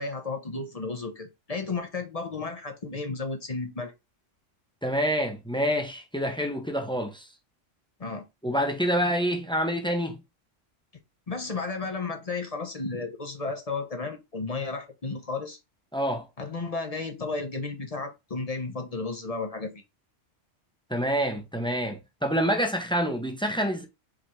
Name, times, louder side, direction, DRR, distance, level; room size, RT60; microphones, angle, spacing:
voice 1, 0.0-3.9 8.0-8.2 11.3-15.6 16.4-19.7, left 3 dB, 35° left, 0.8 m, -33 dB
voice 2, 4.8-7.3 8.4-10.2 15.9-16.2 20.9-23.9, equal, 5° left, 0.6 m, -27 dB
4.9 x 3.5 x 3.0 m
omnidirectional pair, 1.3 m